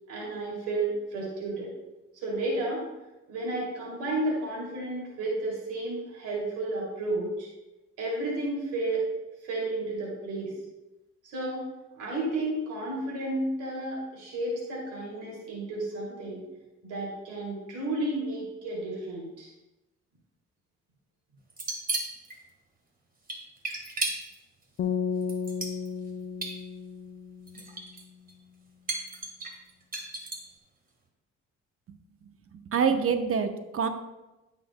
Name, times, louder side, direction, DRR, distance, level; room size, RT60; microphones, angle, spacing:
voice 1, 0.1-1.7 2.2-2.8 3.3-7.5 8.0-9.0 9.4-10.5 11.2-11.6 11.9-16.4 16.8-19.5, right 2 dB, 90° right, -3 dB, 2.8 m, -32 dB
sound 1, 21.5-22.4 23.3-24.4 25.2-26.1 26.4-26.5 27.5-28.0 28.3-28.4 28.9-30.5, right 2 dB, 30° right, 1.6 m, -33 dB
sound 2, 24.8-28.0, left 6 dB, 45° left, 0.6 m, -33 dB
voice 2, 32.7-33.9, right 6 dB, 50° right, 8 dB, 0.9 m, -25 dB
14.0 x 6.2 x 2.3 m, 1.0 s
cardioid pair, 90°, 30 cm